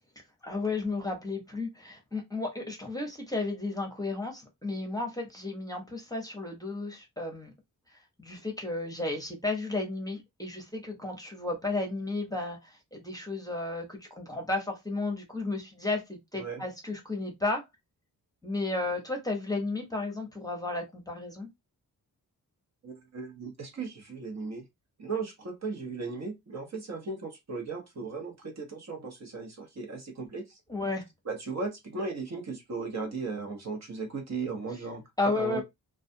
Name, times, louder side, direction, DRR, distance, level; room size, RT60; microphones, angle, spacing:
voice 1, 0.4-7.5 8.2-17.6 18.4-21.5 30.7-31.0 35.2-35.6, left 2 dB, 10° left, 0.9 m, -33 dB
voice 2, 22.8-24.6 25.0-30.6 31.2-35.6, right 4 dB, 45° right, 0.9 m, -36 dB
2.4 x 2.2 x 2.6 m
wide cardioid pair, 100°, 36 cm